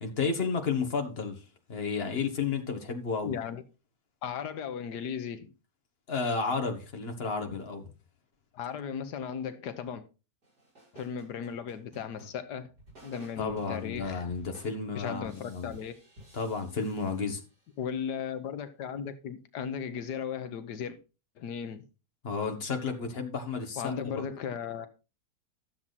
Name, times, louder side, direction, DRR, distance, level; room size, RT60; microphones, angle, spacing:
voice 1, 0.0-1.4 1.7-3.3 6.1-7.8 13.4-15.7 16.3-17.4 22.2-24.2, left 5 dB, 40° left, 1.8 m, -32 dB
voice 2, 3.2-3.6 4.2-5.5 8.5-10.0 10.9-12.7 13.0-14.2 14.9-15.9 17.8-21.0 21.4-21.8 23.8-24.9, left 7 dB, 85° left, 1.5 m, -36 dB
sound 1, 10.4-17.8, right 1 dB, 70° right, 6.9 m, -54 dB
12.5 x 7.3 x 4.1 m
omnidirectional pair, 1.8 m